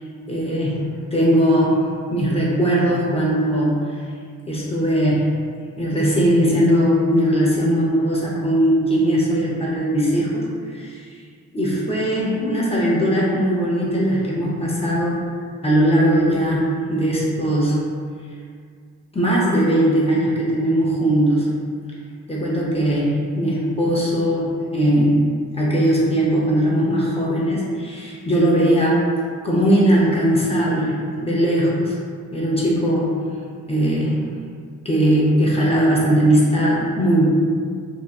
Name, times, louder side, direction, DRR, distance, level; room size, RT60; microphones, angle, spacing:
voice 1, 0.3-4.0 4.5-5.3 5.7-10.9 11.5-15.2 15.6-17.8 19.1-21.5 22.3-25.2 25.5-29.0 29.4-32.0 32.3-33.1 33.7-34.2 34.8-37.3, right 1 dB, 20° left, -6 dB, 0.6 m, -19 dB
2.7 x 2.1 x 2.2 m, 2.1 s
cardioid pair, 70°, 32 cm